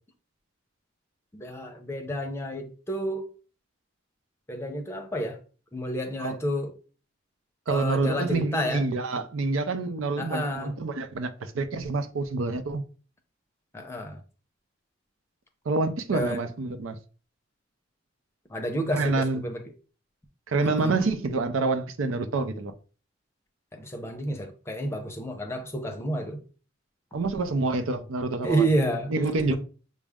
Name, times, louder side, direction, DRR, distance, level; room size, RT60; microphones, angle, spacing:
voice 1, 1.3-3.3 4.5-5.4 5.7-6.7 7.7-8.9 10.2-10.8 13.7-14.2 16.1-16.4 18.5-19.6 20.6-21.1 23.7-26.4 28.4-29.1 29.5-29.6, right 1 dB, 15° left, 0.6 m, -30 dB
voice 2, 7.7-12.9 15.7-17.0 18.9-19.5 20.5-22.7 27.1-28.6 29.1-29.6, right 3 dB, 85° right, 0.5 m, -27 dB
6.1 x 2.0 x 3.5 m
head